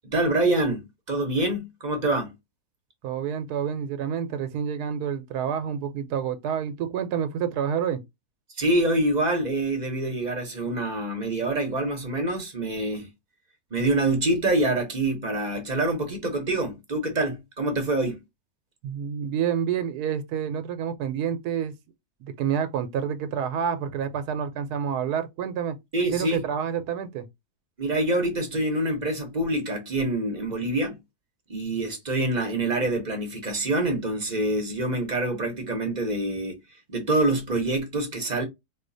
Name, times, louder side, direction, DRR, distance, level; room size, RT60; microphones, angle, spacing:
voice 1, 0.0-2.3 8.6-13.1 13.7-18.2 25.9-26.4 27.8-30.9 31.5-36.6 36.9-38.4, right 2 dB, 35° right, 0.8 m, -26 dB
voice 2, 3.0-8.0 18.8-21.7 22.2-25.8 26.1-27.3, right 8 dB, 80° right, 1.2 m, -28 dB
4.3 x 2.4 x 2.6 m
omnidirectional pair, 1.6 m